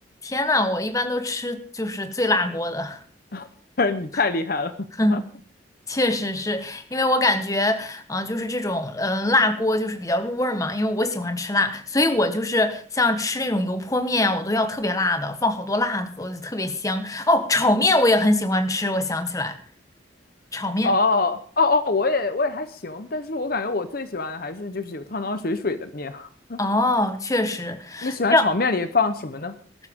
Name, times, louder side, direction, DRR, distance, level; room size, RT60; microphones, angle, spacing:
voice 1, 0.2-3.0 5.0-5.2 5.9-19.6 20.5-20.9 26.6-28.4, left 2 dB, 20° left, 1.3 m, -23 dB
voice 2, 3.8-5.2 20.8-26.6 28.0-29.5, left 3 dB, 50° left, 0.9 m, -25 dB
19.5 x 13.0 x 3.7 m
head